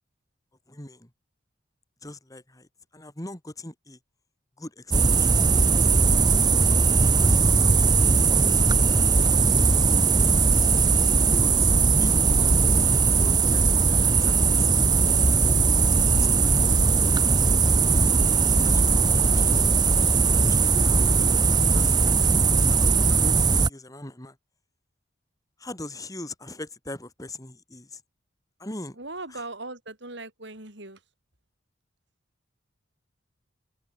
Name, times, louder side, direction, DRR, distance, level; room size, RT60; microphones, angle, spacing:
voice 1, 0.7-1.1 2.0-4.0 4.6-6.4 7.2-9.5 9.9-10.4 11.4-11.7 12.0-14.8 15.3-17.3 17.8-18.1 18.3-19.8 20.5-20.9 21.6-24.4 25.6-28.0 28.6-29.0 29.3-29.4, left 1 dB, 20° left, 3.2 m, -42 dB
sound 1, 4.9-23.7, right 4 dB, 20° right, 0.8 m, -19 dB
voice 2, 29.0-31.0, right 2 dB, 60° right, 6.6 m, -39 dB
head